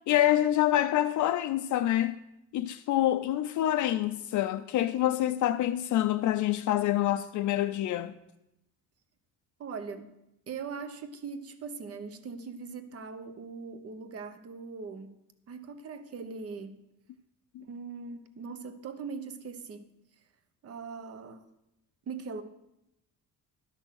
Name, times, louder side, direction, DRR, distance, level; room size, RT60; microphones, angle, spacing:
voice 1, 0.1-2.2 2.5-8.1 17.6-17.7, left 13 dB, 65° left, 0.4 m, -26 dB
voice 2, 9.6-10.2 10.5-15.2 15.5-16.8 17.6-19.9 20.6-21.4 22.1-22.4, right 5 dB, 45° right, 0.9 m, -40 dB
12.0 x 6.2 x 6.4 m
cardioid pair, 170°, 33 cm